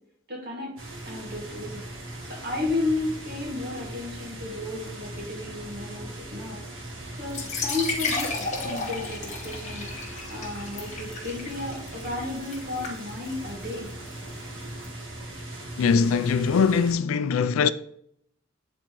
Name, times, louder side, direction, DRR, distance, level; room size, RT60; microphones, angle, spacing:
voice 1, 0.3-0.8 1.0-1.9 2.2-6.6 7.2-9.9 10.3-13.9, left 2 dB, 50° right, 1.9 m, -33 dB
sound 1, 0.8-16.9, right 1 dB, 75° right, 1.5 m, -39 dB
sound 2, 7.3-14.9, left 3 dB, 35° left, 1.2 m, -34 dB
voice 2, 15.8-17.7, left 5 dB, 85° left, 0.4 m, -22 dB
8.8 x 4.1 x 3.0 m
head